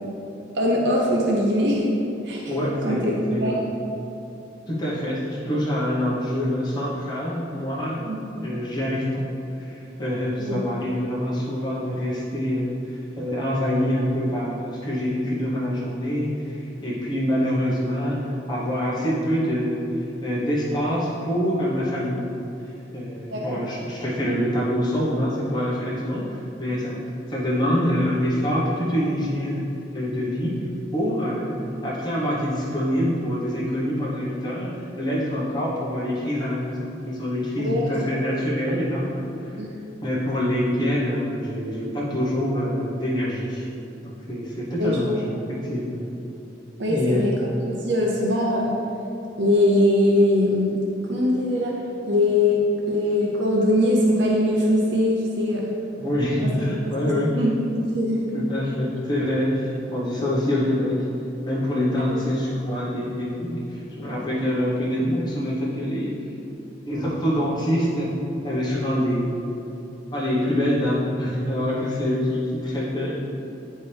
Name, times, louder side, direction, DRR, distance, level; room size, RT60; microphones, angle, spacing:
voice 1, 0.5-1.9 2.2-2.5 2.8-3.1 3.4-3.7 8.0-8.2 10.4-10.6 23.3-23.6 37.6-37.9 38.4-38.5 39.5-39.7 44.8-45.2 46.8-47.3 47.8-48.7 49.4-50.8 51.1-51.7 52.1-52.6 52.9-55.7 56.4-56.5 57.0-58.3 62.1-62.2, left 1 dB, 70° right, -2 dB, 0.8 m, -22 dB
voice 2, 2.5-3.7 4.7-9.2 9.6-22.3 22.9-27.0 27.3-29.7 29.9-30.5 30.9-31.6 31.8-39.6 40.0-43.7 44.0-46.0 46.9-47.2 56.0-57.4 58.3-61.1 61.4-66.1 66.8-68.1 68.4-69.6 70.1-73.2, equal, 25° left, -7 dB, 1.1 m, -25 dB
9.2 x 4.3 x 3.4 m, 2.9 s
head